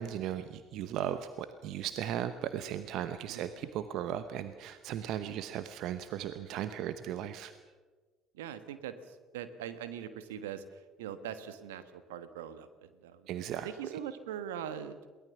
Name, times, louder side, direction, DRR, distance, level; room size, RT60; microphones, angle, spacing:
voice 1, 0.0-7.5 13.3-14.0, right 10 dB, 65° right, 11 dB, 0.9 m, -37 dB
voice 2, 8.3-10.6 11.0-13.3 13.6-15.1, right 9 dB, 80° right, 12 dB, 1.3 m, -42 dB
22.5 x 18.0 x 7.1 m, 1.4 s
hypercardioid pair, 55°, 0 cm